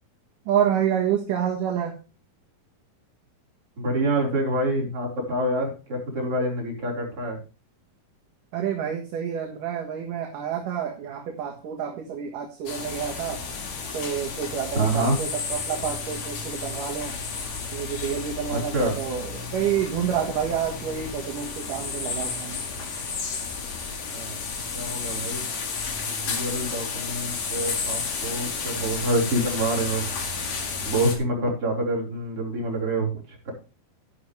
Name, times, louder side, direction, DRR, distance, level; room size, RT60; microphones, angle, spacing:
voice 1, 0.5-1.9 8.5-13.5 13.9-17.1 17.7-22.6, right 9 dB, 65° right, 1 dB, 3.0 m, -28 dB
voice 2, 3.8-7.4 14.8-15.2 18.5-18.9 24.1-24.4 24.7-25.5 26.1-30.1 30.4-33.5, right 1 dB, 40° right, -3 dB, 5.2 m, -27 dB
sound 1, 12.7-31.2, left 5 dB, 50° left, 3.0 m, -32 dB
12.0 x 11.0 x 3.3 m, 0.32 s
omnidirectional pair, 4.3 m